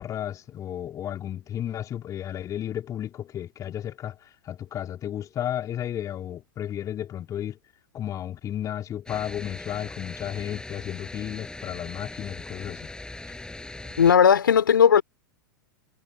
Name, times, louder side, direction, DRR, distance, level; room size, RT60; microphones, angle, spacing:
voice 1, 0.0-4.2 4.4-7.6 7.9-12.9, left 10 dB, 30° left, 4.3 m, -33 dB
sound 1, 9.1-14.2, left 2 dB, 5° left, 7.2 m, -40 dB
voice 2, 14.0-15.0, left 7 dB, 75° left, 4.3 m, -16 dB
figure-of-eight pair, 95°, 11 cm